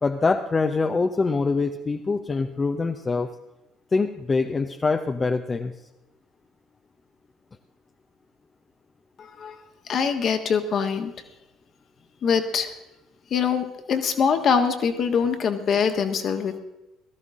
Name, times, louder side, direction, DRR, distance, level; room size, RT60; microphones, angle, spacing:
voice 1, 0.0-3.3 3.9-5.7, left 4 dB, 30° left, 6 dB, 0.8 m, -24 dB
voice 2, 9.2-9.5 9.9-11.1 12.2-12.7 13.3-16.6, left 6 dB, 50° left, 6 dB, 1.6 m, -23 dB
17.5 x 13.5 x 3.7 m, 0.99 s
hypercardioid pair, 55°, 0 cm